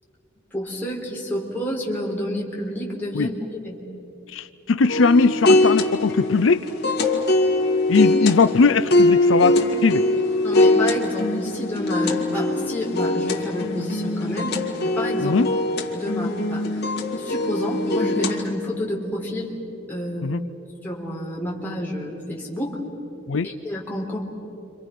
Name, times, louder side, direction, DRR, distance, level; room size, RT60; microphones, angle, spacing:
voice 1, 0.5-3.3 3.6-3.8 10.4-14.6 14.8-15.4 15.9-16.7 17.1-19.6 19.9-20.4 20.8-22.8 23.4-24.2, left 1 dB, 10° left, -4 dB, 4.0 m, -29 dB
voice 2, 4.3-6.7 7.9-10.1 15.2-15.5 20.2-20.4 23.3-23.5, left 4 dB, 80° left, 12 dB, 0.6 m, -19 dB
sound 1, 4.9-18.4, left 2 dB, 55° left, 2.3 m, -22 dB
30.0 x 26.0 x 6.0 m, 2.9 s
head